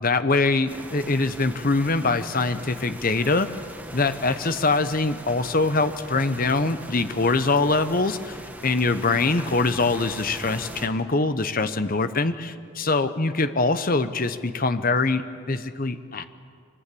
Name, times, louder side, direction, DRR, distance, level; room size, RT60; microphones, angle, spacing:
voice 1, 0.0-3.5 3.9-16.2, left 3 dB, 40° left, 10 dB, 0.9 m, -23 dB
sound 1, 0.7-10.9, right 1 dB, 5° right, 1.4 m, -40 dB
25.0 x 20.0 x 8.5 m, 2.3 s
head